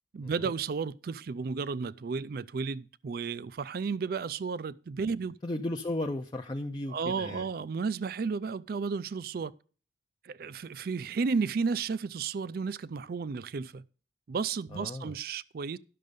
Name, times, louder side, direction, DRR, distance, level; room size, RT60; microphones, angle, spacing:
voice 1, 0.1-5.3 6.9-9.5 10.2-13.8 14.3-15.8, right 5 dB, 50° right, 0.4 m, -33 dB
voice 2, 5.4-7.5 14.7-15.2, left 1 dB, 25° left, 0.5 m, -35 dB
11.0 x 6.5 x 5.1 m
head